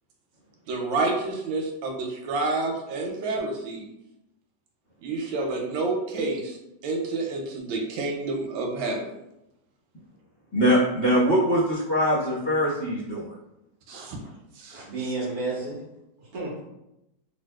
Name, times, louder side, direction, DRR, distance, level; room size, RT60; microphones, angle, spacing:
voice 1, 0.7-3.9 5.0-6.6 6.8-9.0 13.9-14.2 14.6-14.8, right 3 dB, 90° right, 1.4 m, -29 dB
voice 2, 10.5-13.2, equal, 30° left, 1.0 m, -22 dB
voice 3, 14.7-15.9 16.2-16.6, right 3 dB, 60° right, 1.2 m, -32 dB
3.5 x 2.6 x 2.3 m
omnidirectional pair, 2.1 m